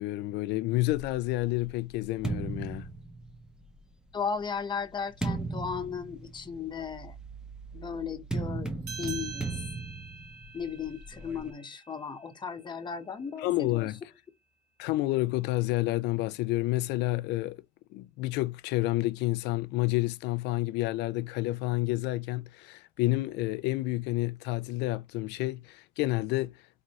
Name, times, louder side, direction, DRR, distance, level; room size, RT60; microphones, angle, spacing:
voice 1, 0.0-2.9 13.4-14.0 14.8-17.6 17.9-26.5, left 18 dB, 90° left, 0.4 m, -29 dB
sound 1, 0.9-3.7 4.4-11.5, right 3 dB, 5° right, 0.7 m, -37 dB
voice 2, 4.1-7.1 7.7-9.5 10.5-13.9, left 6 dB, 25° left, 0.9 m, -36 dB
sound 2, 8.8-13.7, right 6 dB, 80° right, 2.0 m, -46 dB
4.3 x 2.6 x 2.9 m
cardioid pair, 110°, 17 cm